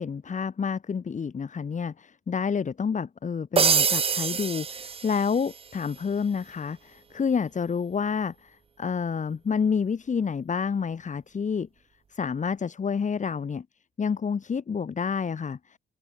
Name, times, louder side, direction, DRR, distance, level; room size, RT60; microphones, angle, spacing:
voice 1, 0.0-11.7 12.1-13.7 14.0-15.8, left 6 dB, 40° left, 2.2 m, -29 dB
sound 1, 3.6-5.6, right 6 dB, 30° right, 0.6 m, -25 dB
open air
cardioid pair, 90°, 20 cm